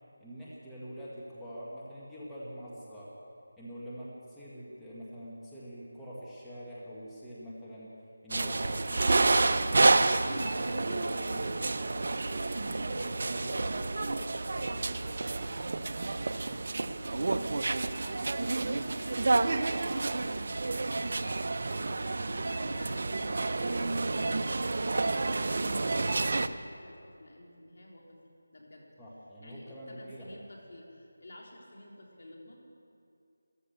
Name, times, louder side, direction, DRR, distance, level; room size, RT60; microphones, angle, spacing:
voice 1, 0.2-3.1 3.6-7.9 8.2-15.2 29.0-30.4, equal, ahead, -11 dB, 1.6 m, -45 dB
sound 1, 8.3-26.5, right 3 dB, 55° right, 0.6 m, -29 dB
voice 2, 15.8-21.3 21.6-21.9 22.3-28.2 28.5-28.9 29.4-32.6, left 1 dB, 65° left, -2 dB, 3.6 m, -51 dB
14.0 x 13.5 x 6.8 m, 2.5 s
figure-of-eight pair, 165°, 0 cm